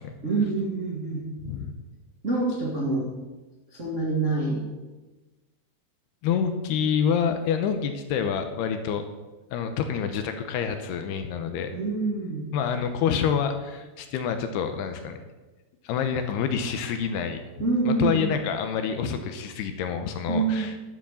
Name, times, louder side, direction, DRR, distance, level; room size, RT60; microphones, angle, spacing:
voice 1, 0.2-1.3 2.2-3.1 3.7-4.6 11.7-12.5 17.6-18.3 20.3-20.7, right 3 dB, 45° right, -4 dB, 0.9 m, -26 dB
voice 2, 6.2-9.0 9.5-11.7 12.5-15.2 15.8-17.4 17.9-20.7, left 7 dB, 75° left, 7 dB, 2.7 m, -27 dB
12.0 x 7.4 x 7.0 m, 1.2 s
omnidirectional pair, 5.1 m